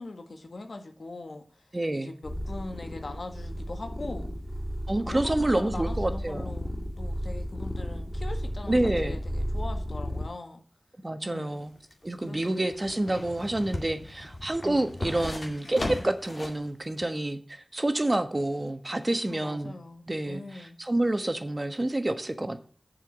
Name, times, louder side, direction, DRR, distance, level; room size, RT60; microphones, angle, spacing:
voice 1, 0.0-1.7 1.9-4.3 5.0-10.6 11.2-11.7 12.2-12.7 14.6-15.0 19.3-20.7, left 2 dB, 80° left, 5 dB, 1.5 m, -41 dB
voice 2, 1.7-2.1 4.9-6.5 8.7-9.2 11.0-11.7 12.0-19.7 20.1-22.6, right 1 dB, 35° right, 8 dB, 1.3 m, -28 dB
sound 1, 2.2-10.3, equal, 15° left, 3.2 m, -33 dB
sound 2, 11.5-16.6 17.0-17.1, left 1 dB, 65° left, 2.3 m, -37 dB
7.4 x 5.8 x 7.5 m, 0.41 s
wide cardioid pair, 55°, 0 cm